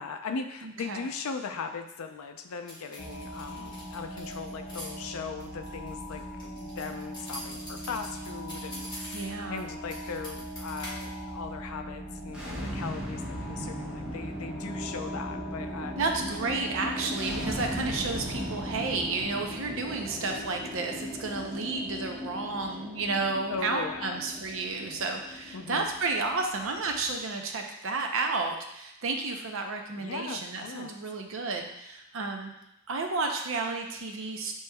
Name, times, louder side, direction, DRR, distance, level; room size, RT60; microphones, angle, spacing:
voice 1, 0.0-16.0 17.0-17.2 23.5-24.2 25.5-25.9 29.9-30.9, left 5 dB, 75° left, 7 dB, 0.4 m, -39 dB
voice 2, 0.6-1.1 9.1-9.7 16.0-32.5 32.9-34.5, right 3 dB, 60° right, 3 dB, 0.6 m, -32 dB
sound 1, 2.7-4.9 5.4-9.6 9.9-11.1, left 1 dB, 20° left, 1.5 m, -43 dB
sound 2, 3.0-19.2, right 1 dB, 60° left, 1.1 m, -40 dB
sound 3, 12.3-27.2, equal, 5° right, 0.5 m, -38 dB
6.9 x 3.1 x 2.2 m, 0.85 s
head